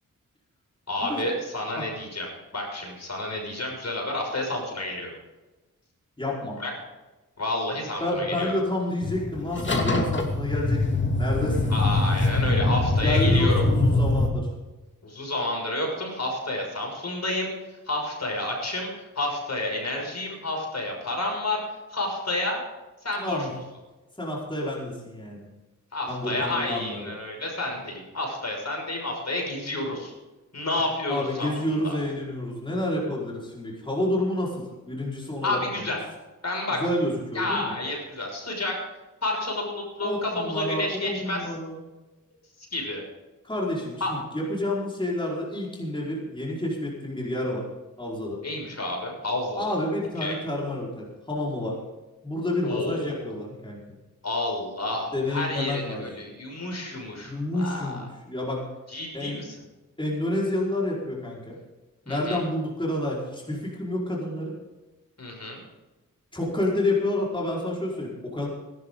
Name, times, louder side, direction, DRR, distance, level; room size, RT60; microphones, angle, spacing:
voice 1, 0.9-2.3 2.5-5.1 6.6-6.7 7.4-8.5 11.7-13.6 15.0-21.6 21.9-22.6 23.0-23.5 25.9-30.1 30.5-32.0 35.4-36.0 36.4-36.9 37.3-38.8 39.2-41.5 42.7-43.0 44.0-44.1 48.4-49.6 50.2-50.3 52.6-53.2 54.2-58.0 58.9-59.5 62.1-62.4 65.2-65.6, left 2 dB, 50° left, 0 dB, 6.3 m, -30 dB
voice 2, 6.2-6.6 8.0-11.7 13.0-14.5 23.2-23.5 24.2-25.4 26.1-27.0 31.1-36.0 36.7-37.7 40.0-41.8 43.4-47.7 48.0-48.4 49.6-51.8 52.2-54.0 55.1-56.1 57.2-58.7 59.1-59.4 60.0-61.5 62.0-64.5 66.3-68.5, left 1 dB, 15° left, -5 dB, 4.9 m, -29 dB
sound 1, 9.0-14.3, left 2 dB, 35° left, 2.6 m, -23 dB
20.0 x 12.0 x 3.9 m, 1.1 s
cardioid pair, 55°, 33 cm